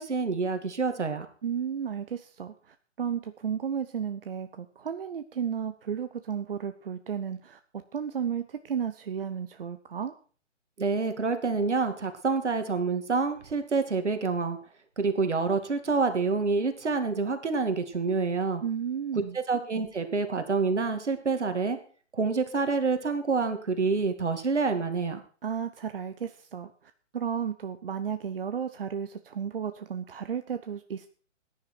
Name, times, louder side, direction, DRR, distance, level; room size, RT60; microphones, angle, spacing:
voice 1, 0.0-1.3 10.8-14.6 15.0-18.6 19.3-21.8 22.1-25.2, right 4 dB, 65° right, 7 dB, 2.5 m, -27 dB
voice 2, 1.4-7.6 7.9-10.1 18.6-19.4 25.4-26.7 27.1-31.1, right 8 dB, 50° right, 9 dB, 0.9 m, -33 dB
17.5 x 10.5 x 4.6 m, 0.43 s
figure-of-eight pair, 135°, 37 cm